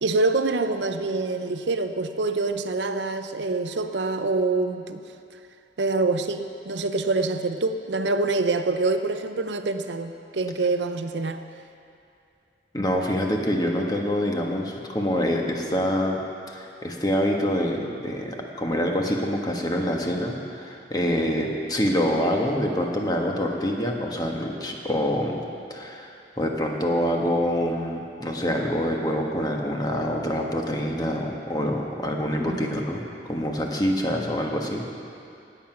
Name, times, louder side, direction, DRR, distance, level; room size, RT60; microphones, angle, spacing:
voice 1, 0.0-5.0 5.8-11.4 32.4-32.7, right 3 dB, 80° right, 8 dB, 0.6 m, -25 dB
voice 2, 12.7-16.2 16.5-25.4 25.7-33.0 33.3-34.9, equal, 20° left, 1 dB, 1.3 m, -26 dB
18.0 x 7.8 x 5.9 m, 2.6 s
head